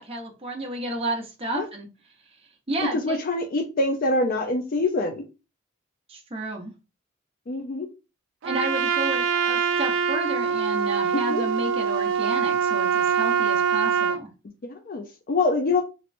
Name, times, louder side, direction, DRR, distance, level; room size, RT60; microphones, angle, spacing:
voice 1, 0.0-1.9 2.7-3.2 6.1-6.7 8.4-14.3, right 1 dB, 30° right, 0 dB, 0.8 m, -31 dB
voice 2, 2.9-5.2 7.5-7.9 11.3-11.4 14.7-15.8, left 2 dB, 45° left, 5 dB, 0.4 m, -25 dB
Trumpet, 8.4-14.2, right 7 dB, 65° right, 0.4 m, -24 dB
3.1 x 2.8 x 2.5 m, 0.30 s
head